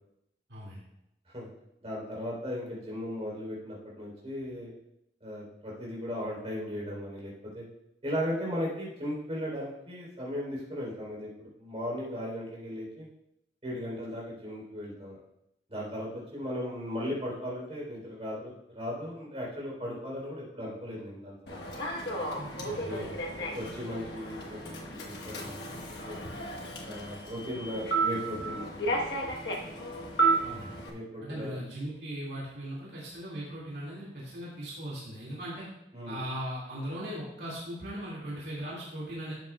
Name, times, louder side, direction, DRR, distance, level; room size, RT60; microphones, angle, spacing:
voice 1, 1.8-4.7 5.2-7.6 8.0-13.1 13.6-15.2 15.7-21.6 22.8-23.1 23.5-25.7 26.0-26.2 26.8-29.1 30.9-31.6 35.9-36.2, equal, 35° right, -4 dB, 3.5 m, -37 dB
Human voice / Subway metro underground, 21.5-30.9, right 3 dB, 70° left, 1.2 m, -33 dB
voice 2, 22.3-23.1 30.4-30.7 31.2-35.7 36.1-39.3, equal, 70° right, -6 dB, 2.2 m, -39 dB
12.5 x 7.6 x 2.3 m, 0.82 s
head